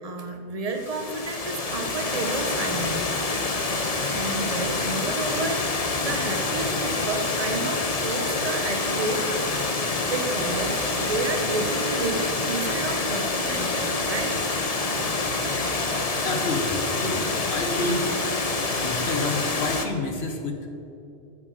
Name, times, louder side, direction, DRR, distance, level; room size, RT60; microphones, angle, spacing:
voice 1, 0.0-3.0 4.1-9.2 10.0-15.8, right 3 dB, 35° right, 5 dB, 1.2 m, -31 dB
Water, 0.7-19.9, left 3 dB, 35° left, 1.0 m, -27 dB
voice 2, 16.2-18.1 18.8-20.7, left 2 dB, 65° left, 4 dB, 1.7 m, -29 dB
14.0 x 7.6 x 6.4 m, 2.7 s
omnidirectional pair, 1.1 m